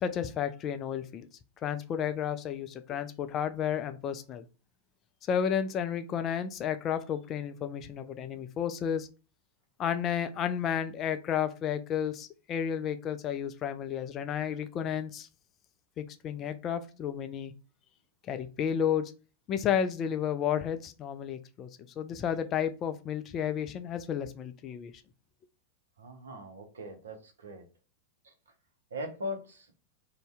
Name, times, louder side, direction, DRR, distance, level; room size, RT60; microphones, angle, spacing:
voice 1, 0.0-1.3 1.6-4.4 5.3-9.1 9.8-15.3 16.0-17.5 18.3-19.1 19.5-21.7 22.0-24.9, left 8 dB, 30° left, 0.3 m, -32 dB
voice 2, 26.0-27.6 28.2-28.3 28.9-29.7, left 1 dB, 70° right, 0.7 m, -40 dB
2.6 x 2.1 x 3.3 m
figure-of-eight pair, 90°, 0 cm